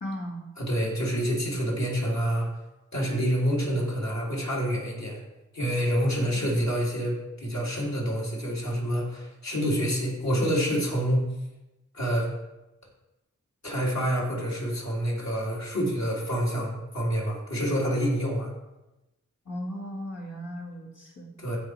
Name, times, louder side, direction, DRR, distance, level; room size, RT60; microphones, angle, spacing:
voice 1, 0.0-0.4 6.2-6.4 19.5-21.3, equal, 75° left, -4 dB, 2.6 m, -36 dB
voice 2, 0.6-2.5 2.9-5.2 5.5-11.3 11.9-12.3 13.6-18.5 21.4-21.6, equal, 60° left, -5 dB, 3.6 m, -27 dB
15.0 x 5.1 x 4.8 m, 0.99 s
wide cardioid pair, 75°, 31 cm